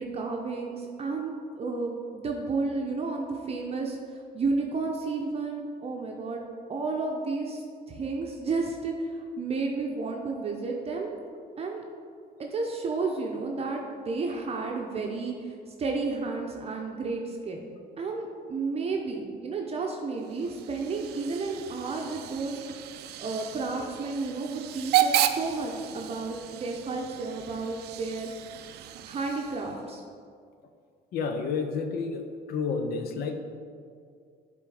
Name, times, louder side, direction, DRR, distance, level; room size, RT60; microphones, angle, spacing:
voice 1, 0.0-6.4 6.7-11.2 11.6-11.8 12.4-17.6 18.0-22.6 23.2-28.3 29.0-30.0, right 3 dB, 35° right, 1 dB, 0.7 m, -32 dB
Hiss / Train / Alarm, 20.2-29.8, right 11 dB, 75° right, 0.4 m, -33 dB
voice 2, 31.1-33.4, left 5 dB, 65° left, 6 dB, 0.6 m, -30 dB
7.5 x 3.8 x 4.8 m, 2.2 s
cardioid pair, 110°, 17 cm